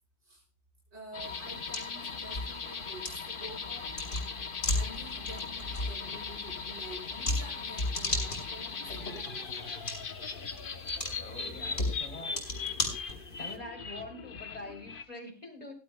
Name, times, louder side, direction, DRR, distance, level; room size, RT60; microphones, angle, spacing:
voice 1, 0.9-4.0 4.7-9.8, right 1 dB, 70° right, -3 dB, 5.7 m, -48 dB
sound 1, 1.1-15.0, left 5 dB, 50° left, 1.1 m, -39 dB
sound 2, 1.2-13.6, left 2 dB, 70° left, 3.5 m, -37 dB
voice 2, 11.1-12.9 13.4-15.7, left 2 dB, 35° left, 2 dB, 3.5 m, -45 dB
18.0 x 11.5 x 2.2 m, 0.31 s
omnidirectional pair, 1.2 m